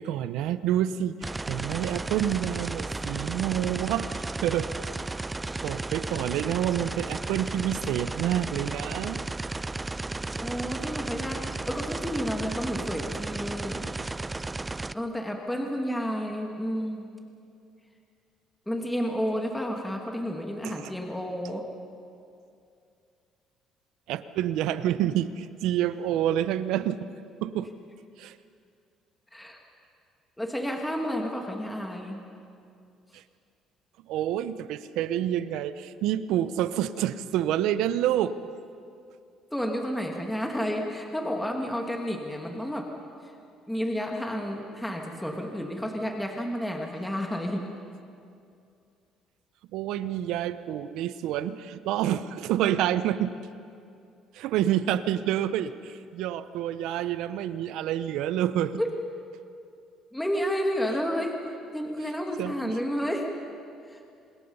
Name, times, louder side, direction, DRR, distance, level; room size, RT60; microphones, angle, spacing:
voice 1, 0.0-4.1 4.4-4.7 5.6-9.2 20.6-20.9 24.1-27.1 27.4-27.7 28.2-28.4 33.1-33.2 34.1-38.4 49.7-53.4 54.3-58.8 62.4-62.8, right 11 dB, 80° right, 14 dB, 0.8 m, -28 dB
sound 1, 1.2-14.9, right 2 dB, 15° right, 0.4 m, -34 dB
voice 2, 10.4-14.2 14.9-17.2 18.7-21.7 29.3-29.6 30.4-32.2 39.5-42.9 43.2-43.3 43.7-47.7 58.8-58.9 60.1-61.4 61.7-63.3 63.9-64.0, equal, 5° left, 2 dB, 2.3 m, -31 dB
27.0 x 21.0 x 5.6 m, 2.5 s
cardioid pair, 90°, 0 cm